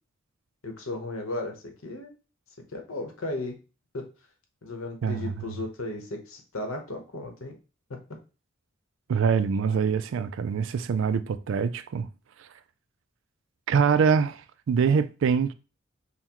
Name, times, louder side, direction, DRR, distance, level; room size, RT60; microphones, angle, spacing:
voice 1, 0.6-2.1 2.7-3.5 3.9-4.1 4.6-7.5, left 2 dB, 85° left, 1.0 m, -35 dB
voice 2, 5.0-5.3 9.1-12.1 12.4-12.5 13.7-15.5, right 6 dB, 65° right, 0.3 m, -24 dB
5.6 x 2.1 x 2.9 m
head